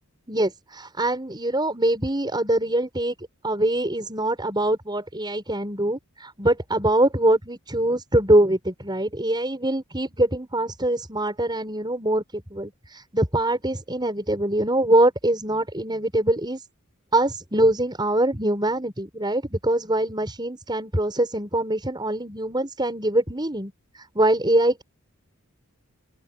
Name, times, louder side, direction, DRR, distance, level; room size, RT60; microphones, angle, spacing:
voice 1, 0.3-3.1 3.4-16.6 17.1-23.7 24.1-24.8, right 1 dB, 20° right, 6.3 m, -23 dB
open air
head